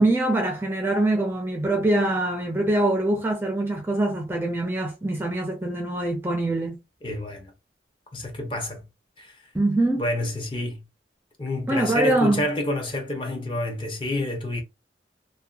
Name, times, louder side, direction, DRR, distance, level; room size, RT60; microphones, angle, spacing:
voice 1, 0.0-6.8 9.5-10.0 11.7-12.5, right 1 dB, 15° right, 0.4 m, -23 dB
voice 2, 7.0-7.5 8.1-8.8 9.2-9.4 9.8-10.8 11.4-14.6, left 1 dB, 30° left, 0.7 m, -28 dB
2.6 x 2.1 x 2.3 m
head